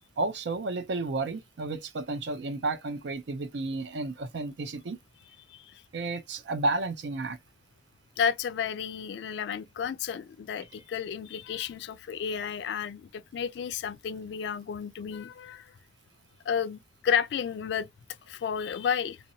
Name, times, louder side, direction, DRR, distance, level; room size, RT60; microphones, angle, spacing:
voice 1, 0.2-5.0 5.9-7.4, right 3 dB, 75° right, 0.5 m, -32 dB
voice 2, 5.5-5.8 8.2-15.7 16.5-17.9 18.2-19.2, left 7 dB, 70° left, 0.3 m, -32 dB
2.7 x 2.1 x 2.7 m
head